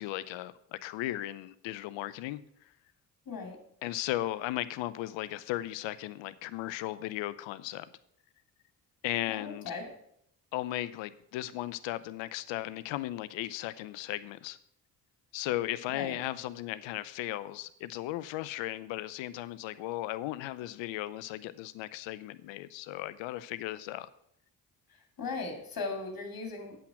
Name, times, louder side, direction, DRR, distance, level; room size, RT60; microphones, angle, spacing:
voice 1, 0.0-2.7 3.8-7.9 9.0-9.7 10.5-14.6 15.3-24.1, left 15 dB, 65° left, 16 dB, 0.7 m, -36 dB
voice 2, 3.3-3.6 9.3-9.9 15.9-16.2 24.9-26.8, left 4 dB, 45° left, 4 dB, 2.7 m, -38 dB
8.6 x 7.3 x 6.1 m, 0.72 s
hypercardioid pair, 40°, 48 cm